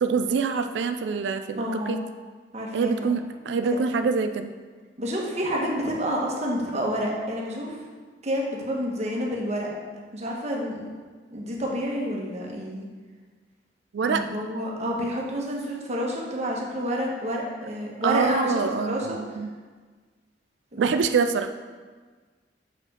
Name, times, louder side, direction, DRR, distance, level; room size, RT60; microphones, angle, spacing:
voice 1, 0.0-2.0 2.7-4.5 13.9-14.2 18.0-19.5 20.8-21.5, right 5 dB, 75° right, 8 dB, 0.3 m, -25 dB
voice 2, 1.6-1.9 2.5-3.1 3.5-3.8 5.0-7.8 8.2-9.7 10.1-10.8 11.3-12.8 14.0-19.2 20.7-20.9, equal, 40° right, -2 dB, 1.2 m, -29 dB
5.8 x 5.0 x 5.0 m, 1.4 s
head